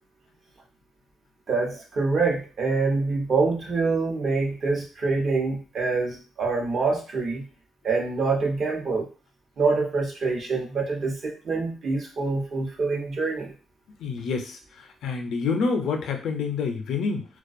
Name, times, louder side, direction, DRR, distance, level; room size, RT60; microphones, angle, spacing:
voice 1, 1.5-7.4 7.8-9.1 9.6-13.5, right 4 dB, 55° right, 0 dB, 0.9 m, -25 dB
voice 2, 14.0-17.3, left 4 dB, 75° left, 5 dB, 0.4 m, -28 dB
2.4 x 2.2 x 2.5 m, 0.34 s
cardioid pair, 90°, 0 cm